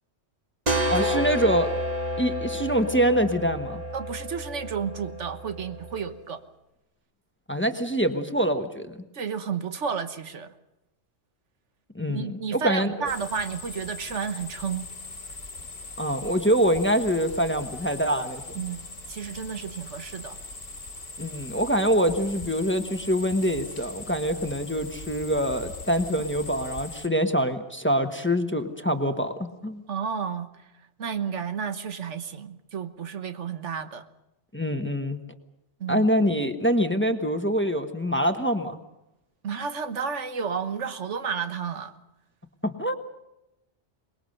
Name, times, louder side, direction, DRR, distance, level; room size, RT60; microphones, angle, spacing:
sound 1, 0.7-6.1, left 1 dB, 35° right, 2.1 m, -30 dB
voice 1, 0.9-1.7 2.2-3.8 7.5-9.0 11.9-13.1 16.0-18.4 21.2-29.8 34.5-35.2 35.9-38.8 42.6-42.9, equal, 10° left, 7 dB, 1.2 m, -25 dB
voice 2, 3.9-6.4 9.1-10.5 12.1-14.9 18.5-20.4 29.9-30.7 31.0-34.0 35.8-36.1 39.4-41.9, right 6 dB, 80° right, 9 dB, 1.5 m, -32 dB
sound 2, 13.1-27.1, left 3 dB, 50° left, 1.9 m, -41 dB
23.5 x 21.0 x 6.7 m, 0.92 s
omnidirectional pair, 1.2 m